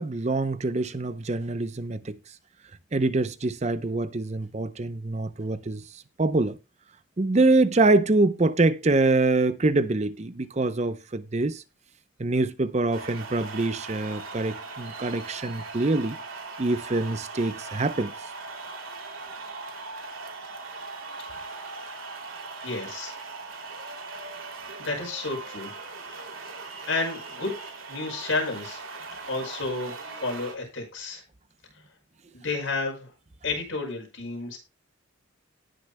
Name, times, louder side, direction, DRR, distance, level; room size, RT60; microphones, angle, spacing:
voice 1, 0.0-2.2 2.9-5.8 6.2-6.6 7.2-11.6 12.2-16.2 16.6-18.1, right 2 dB, 35° right, 0.6 m, -25 dB
sound 1, 12.9-30.5, right 3 dB, 90° right, 2.7 m, -39 dB
voice 2, 22.6-23.1 24.8-25.7 26.9-27.5 27.9-28.8 29.3-31.2 32.3-33.1 33.4-34.6, left 3 dB, 70° left, 5.7 m, -31 dB
18.5 x 6.5 x 2.2 m
head